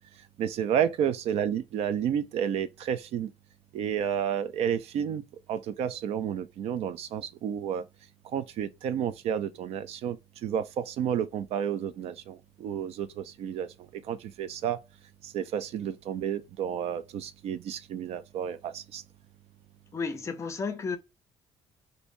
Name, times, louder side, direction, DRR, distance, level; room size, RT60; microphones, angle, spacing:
voice 1, 0.4-3.3 3.7-5.2 5.5-7.8 8.3-10.2 10.4-14.8 15.2-19.0, right 9 dB, 60° right, 0.4 m, -31 dB
voice 2, 19.9-21.0, left 4 dB, 25° left, 0.5 m, -32 dB
2.7 x 2.6 x 3.1 m
cardioid pair, 180°, 12 cm